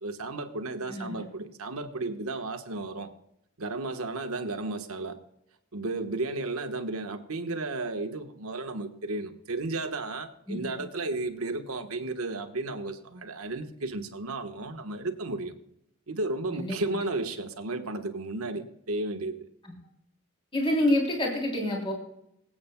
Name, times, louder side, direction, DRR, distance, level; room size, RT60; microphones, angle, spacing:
voice 1, 0.0-3.1 3.6-5.2 5.7-15.5 16.1-19.5, right 2 dB, 85° right, 7 dB, 1.3 m, -33 dB
voice 2, 10.5-10.8 16.5-17.0 19.6-19.7 20.5-21.9, left 1 dB, 25° left, -2 dB, 3.3 m, -28 dB
24.5 x 8.6 x 2.3 m, 0.79 s
head